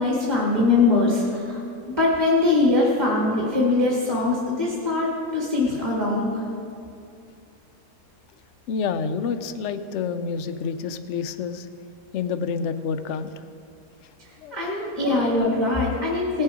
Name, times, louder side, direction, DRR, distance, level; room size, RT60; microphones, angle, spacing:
voice 1, 0.0-1.6 2.0-6.4 14.5-16.4, left 2 dB, 15° right, -4 dB, 1.6 m, -22 dB
voice 2, 8.7-11.7 12.1-13.3 14.4-14.6 15.0-15.4, left 5 dB, 65° left, 10 dB, 0.7 m, -28 dB
18.5 x 7.3 x 4.9 m, 2.6 s
omnidirectional pair, 1.7 m